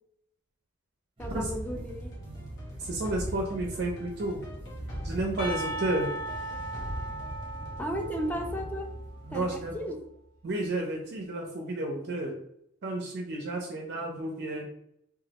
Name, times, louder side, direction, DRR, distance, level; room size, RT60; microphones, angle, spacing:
sound 1, 1.2-10.0, equal, 60° left, 1.0 m, -40 dB
voice 1, 1.2-2.2 7.8-8.9 9.3-10.0, equal, 10° left, 3 dB, 0.4 m, -34 dB
sound 2, 1.2-9.8, right 1 dB, 25° right, 0.8 m, -47 dB
voice 2, 2.8-4.4 5.0-6.1 9.3-9.8 10.4-12.4 12.8-14.7, right 2 dB, 50° right, 1 dB, 0.5 m, -31 dB
Percussion, 5.4-9.3, right 1 dB, 90° left, 1.2 m, -38 dB
3.0 x 2.3 x 2.8 m, 0.74 s
head